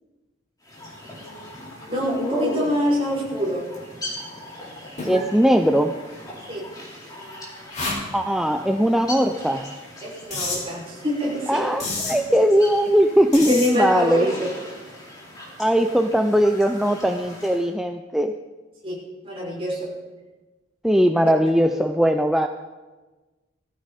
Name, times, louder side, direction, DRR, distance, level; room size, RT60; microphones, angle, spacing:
sound 1, 0.6-17.7, left 1 dB, 20° left, 3.9 m, -38 dB
voice 1, 1.0-1.4 1.8-3.7 6.5-6.7 10.0-11.7 13.4-14.5 18.8-19.9, equal, 30° right, -4 dB, 5.6 m, -26 dB
sound 2, 5.0-5.3 6.1-6.2 7.7-8.0 10.3-10.6 11.8-12.2 13.3-13.7, left 2 dB, 35° left, 4.5 m, -28 dB
voice 2, 5.0-6.0 8.1-9.7 11.5-14.3 15.6-18.3 20.8-22.5, equal, ahead, 5 dB, 0.4 m, -19 dB
19.5 x 14.5 x 4.1 m, 1.2 s
head